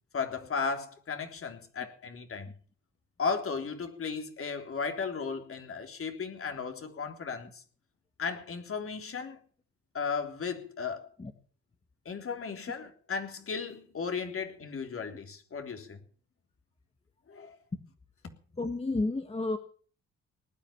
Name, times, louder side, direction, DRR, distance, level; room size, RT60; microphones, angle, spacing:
voice 1, 0.1-2.5 3.2-7.6 8.2-9.4 9.9-11.1 12.0-16.0 17.3-17.5, left 5 dB, 45° left, 3.5 m, -35 dB
voice 2, 18.6-19.6, left 2 dB, 20° left, 1.7 m, -31 dB
19.5 x 9.8 x 7.1 m
cardioid pair, 90°, 30 cm